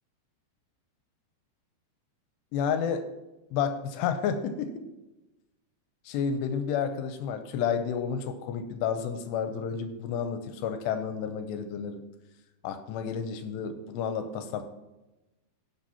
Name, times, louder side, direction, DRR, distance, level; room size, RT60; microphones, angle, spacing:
voice 1, 2.5-3.1 3.5-4.8 6.1-12.0 12.6-14.6, left 7 dB, 85° left, 8 dB, 2.8 m, -31 dB
17.0 x 7.7 x 2.9 m, 1.0 s
omnidirectional pair, 5.0 m